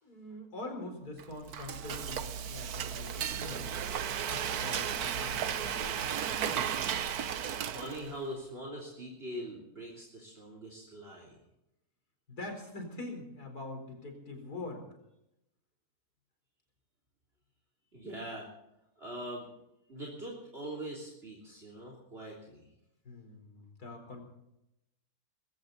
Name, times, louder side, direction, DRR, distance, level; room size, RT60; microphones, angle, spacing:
voice 1, 0.0-3.8 4.2-6.6 12.3-14.9 21.5-21.6 23.0-24.2, left 2 dB, 75° left, 3 dB, 4.9 m, -44 dB
Frying (food), 1.2-8.3, right 8 dB, 75° right, 1.4 m, -34 dB
voice 2, 7.6-11.4 17.9-18.5 19.0-19.5 19.9-22.7, right 1 dB, 40° right, -2 dB, 3.6 m, -42 dB
21.0 x 17.0 x 4.1 m, 0.86 s
omnidirectional pair, 1.6 m